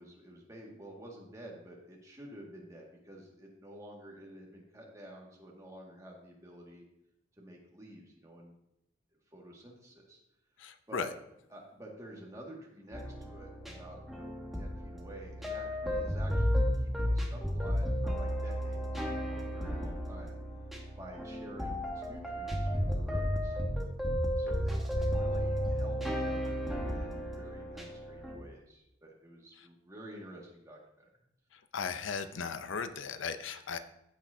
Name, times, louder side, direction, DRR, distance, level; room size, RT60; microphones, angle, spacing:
voice 1, 0.0-6.9 7.4-8.5 9.3-10.2 10.9-11.1 11.5-20.4 21.0-23.6 24.4-30.8, right 1 dB, 15° right, -2 dB, 1.8 m, -50 dB
voice 2, 10.6-11.1 31.7-33.8, left 6 dB, 75° left, 10 dB, 0.5 m, -36 dB
sound 1, 12.9-28.4, equal, ahead, 1.0 m, -33 dB
15.0 x 6.1 x 2.7 m, 0.83 s
head